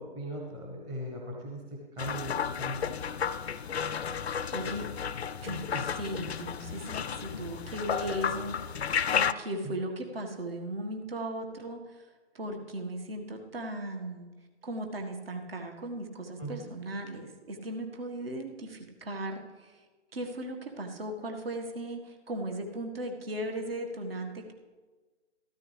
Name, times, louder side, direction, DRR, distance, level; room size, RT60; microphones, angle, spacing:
voice 1, 0.0-3.0 5.7-5.9 9.6-9.8 16.4-16.7, equal, 10° right, -1 dB, 0.9 m, -39 dB
sound 1, 2.0-9.3, left 7 dB, 65° left, 0.5 m, -32 dB
voice 2, 4.3-4.9 5.4-12.1 12.4-14.3 14.6-19.8 20.1-24.5, right 1 dB, 55° right, 4 dB, 1.7 m, -37 dB
13.5 x 13.0 x 3.3 m, 1.3 s
figure-of-eight pair, 140°, 34 cm